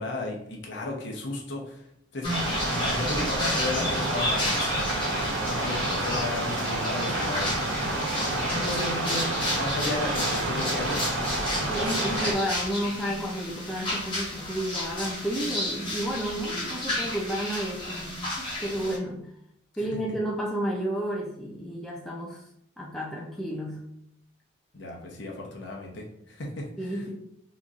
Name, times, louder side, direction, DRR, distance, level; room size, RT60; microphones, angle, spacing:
voice 1, 0.0-1.8 2.1-2.3 2.7-4.7 5.2-7.9 8.3-11.3 24.7-27.0, left 2 dB, 60° left, -1 dB, 0.8 m, -34 dB
sound 1, 2.2-19.0, left 1 dB, 25° left, 1.0 m, -32 dB
sound 2, 2.3-12.3, right 2 dB, 75° right, 0.7 m, -29 dB
voice 2, 11.7-19.3 19.8-22.4 22.8-23.8 26.8-27.1, right 1 dB, ahead, -3 dB, 0.4 m, -31 dB
3.9 x 2.9 x 2.4 m, 0.73 s
head